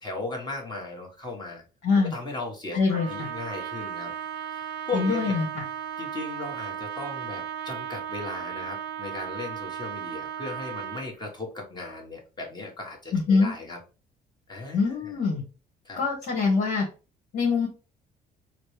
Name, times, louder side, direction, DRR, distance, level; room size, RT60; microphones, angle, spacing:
voice 1, 0.0-1.6 2.0-4.1 4.5-5.4 6.0-13.8 14.5-15.2 15.8-16.0, left 3 dB, 25° left, 0 dB, 1.3 m, -37 dB
voice 2, 2.7-3.3 4.9-5.6 13.1-13.5 14.7-15.4 16.0-16.8 17.3-17.7, left 4 dB, 65° left, -1 dB, 1.2 m, -24 dB
Trumpet, 2.9-11.1, right 8 dB, 90° right, 0.7 m, -35 dB
4.1 x 2.1 x 3.2 m, 0.33 s
cardioid pair, 110°, 17 cm